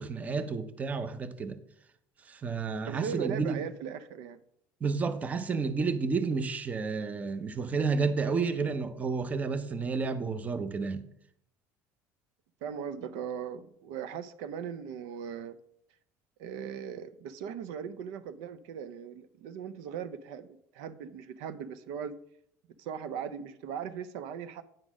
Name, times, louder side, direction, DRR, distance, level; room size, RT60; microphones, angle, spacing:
voice 1, 0.0-1.6 2.2-3.6 4.8-11.0, right 4 dB, 25° right, 0.6 m, -31 dB
voice 2, 2.9-4.4 12.6-15.6 16.4-22.1 22.8-24.6, right 7 dB, 85° right, 0.5 m, -38 dB
8.8 x 3.9 x 6.1 m
cardioid pair, 135°, 6 cm